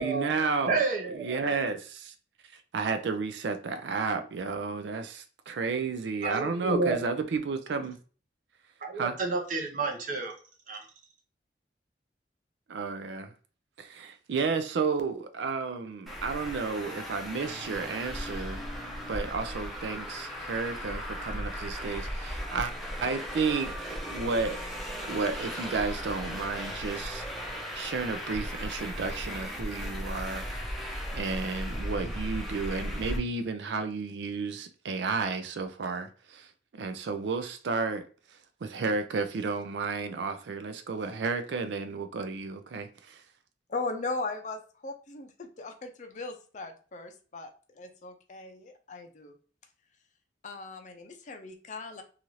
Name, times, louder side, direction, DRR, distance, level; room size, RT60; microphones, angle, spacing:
voice 1, 0.0-0.8 1.1-2.1 2.5-8.0 9.0-9.1 12.7-13.3 13.8-18.7 19.1-22.7 23.0-24.7 25.1-27.2 27.7-30.5 31.1-38.0 38.6-43.2, right 4 dB, 75° right, 0.4 m, -32 dB
voice 2, 0.7-1.5 6.2-7.0 8.8-10.3 10.7-10.9, right 3 dB, 45° right, 0.7 m, -30 dB
Traffic noise roadway noise, 16.1-33.2, equal, ahead, 0.6 m, -36 dB
voice 3, 43.7-49.3 50.4-52.0, left 3 dB, 45° left, 0.5 m, -38 dB
2.7 x 2.4 x 3.0 m
head